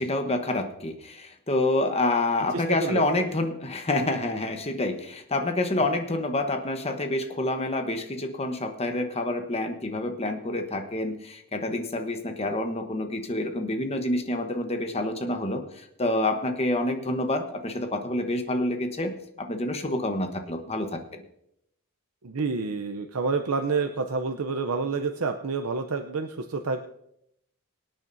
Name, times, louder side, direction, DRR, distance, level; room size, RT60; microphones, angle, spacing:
voice 1, 0.0-21.2, left 2 dB, 30° left, 5 dB, 1.1 m, -28 dB
voice 2, 2.5-3.0 22.2-26.8, right 4 dB, 80° right, 6 dB, 0.7 m, -28 dB
24.0 x 8.9 x 2.7 m, 0.77 s
head